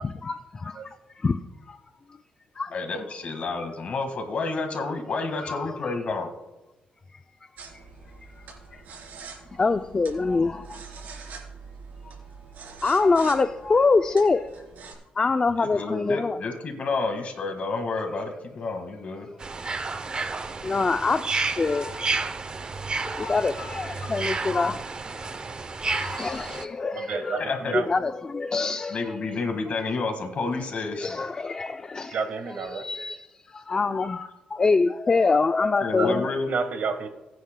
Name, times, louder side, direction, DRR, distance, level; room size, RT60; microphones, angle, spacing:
voice 1, 0.0-1.8 2.6-2.7 5.4-6.2 7.7-7.8 8.5-8.8 9.5-11.2 12.8-14.5 15.2-16.4 20.6-22.2 23.0-24.9 25.1-25.3 25.8-29.4 31.0-32.2 32.7-36.3, left 4 dB, 25° left, 9 dB, 0.3 m, -25 dB
voice 2, 2.7-6.3 15.6-19.3 27.4-27.8 28.9-31.2 35.8-36.5, left 3 dB, 50° left, 5 dB, 1.7 m, -30 dB
sound 1, 7.6-14.9, right 5 dB, 75° right, 3.5 m, -44 dB
sound 2, 19.4-26.6, right 4 dB, 30° right, 0.6 m, -31 dB
voice 3, 26.9-27.9 32.1-32.8 36.0-36.1 36.5-37.1, right 5 dB, 60° right, 7 dB, 1.3 m, -30 dB
21.5 x 9.4 x 2.2 m, 1.1 s
cardioid pair, 125°, 3 cm